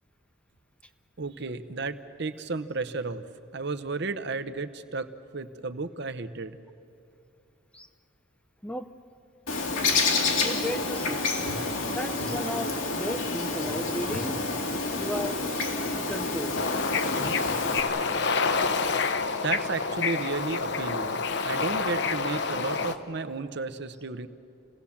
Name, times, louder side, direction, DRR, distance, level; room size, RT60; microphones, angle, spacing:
voice 1, 1.2-3.2 3.5-5.1 5.3-6.6 19.4-24.3, right 3 dB, 60° right, 10 dB, 0.9 m, -33 dB
Bird, 9.5-17.8, left 3 dB, 85° left, 2.6 m, -29 dB
voice 2, 10.4-11.3 11.9-14.4 15.0-16.6, left 1 dB, 5° left, 10 dB, 0.6 m, -35 dB
Bird / Ocean, 16.5-23.0, left 4 dB, 60° left, 0.9 m, -28 dB
29.0 x 18.0 x 7.2 m, 2.7 s
head